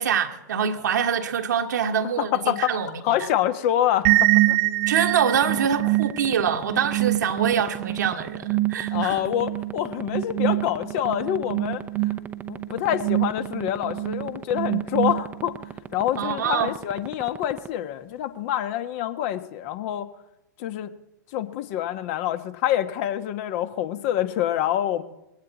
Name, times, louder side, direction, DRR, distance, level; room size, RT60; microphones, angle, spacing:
voice 1, 0.0-3.0 4.9-9.2 16.2-16.7, right 7 dB, 70° right, 1.4 m, -25 dB
voice 2, 2.2-2.8 3.0-4.6 8.9-11.8 12.5-15.5 15.9-20.1 20.6-20.9 21.3-25.0, left 11 dB, 45° left, 1.3 m, -26 dB
sound 1, 4.0-15.7, right 18 dB, 50° right, 1.1 m, -25 dB
sound 2, 5.3-17.7, right 7 dB, 15° right, 0.8 m, -35 dB
21.0 x 17.0 x 4.1 m
figure-of-eight pair, 105°, 10 cm